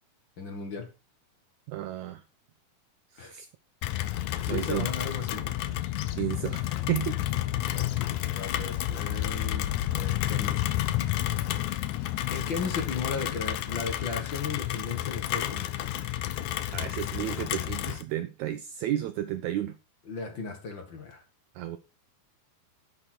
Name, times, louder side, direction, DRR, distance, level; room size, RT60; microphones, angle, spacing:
voice 1, 0.4-0.9 3.2-3.3 4.4-5.6 7.7-10.6 12.3-15.9 20.1-21.2, left 4 dB, 45° left, 1.9 m, -36 dB
voice 2, 1.7-2.2 3.1-3.5 4.5-4.9 6.1-7.2 16.7-19.8 21.6-21.8, right 13 dB, 90° right, 1.6 m, -32 dB
Rain, 3.8-18.0, left 13 dB, 80° left, 1.8 m, -30 dB
11.0 x 6.4 x 4.5 m
omnidirectional pair, 4.0 m